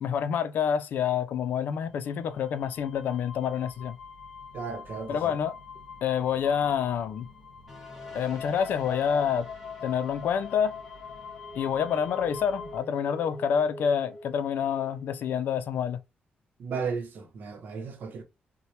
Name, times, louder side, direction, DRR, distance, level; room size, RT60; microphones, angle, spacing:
voice 1, 0.0-4.0 5.1-5.5 6.0-7.3 8.1-9.5 9.8-10.8 11.5-16.0, left 8 dB, 70° left, 0.4 m, -27 dB
sound 1, 1.7-12.8, left 5 dB, 50° left, 0.9 m, -46 dB
voice 2, 4.5-5.3 16.6-18.2, right 5 dB, 60° right, 0.7 m, -35 dB
sound 2, 7.7-15.4, left 3 dB, ahead, 1.2 m, -42 dB
2.8 x 2.1 x 3.1 m
cardioid pair, 140°, 3 cm